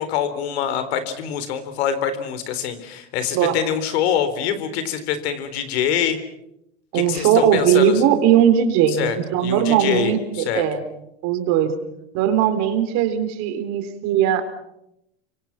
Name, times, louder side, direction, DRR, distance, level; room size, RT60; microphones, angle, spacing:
voice 1, 0.0-6.2 6.9-8.0 8.9-10.6, left 8 dB, 75° left, 11 dB, 3.9 m, -25 dB
voice 2, 6.9-10.8 11.2-11.7 12.1-14.4, right 9 dB, 60° right, 8 dB, 4.1 m, -19 dB
29.0 x 25.0 x 6.0 m, 0.82 s
supercardioid pair, 110°, 32 cm